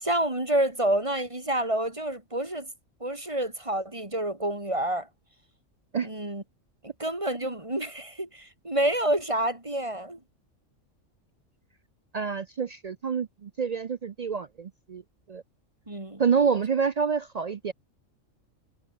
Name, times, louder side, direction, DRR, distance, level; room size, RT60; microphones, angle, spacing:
voice 1, 0.0-2.7 3.0-5.1 6.0-6.4 6.8-10.2 15.9-16.2, right 1 dB, 25° right, 2.9 m, -28 dB
voice 2, 12.1-15.0 15.3-15.4 16.2-17.7, right 6 dB, 60° right, 0.4 m, -27 dB
omnidirectional pair, 1.3 m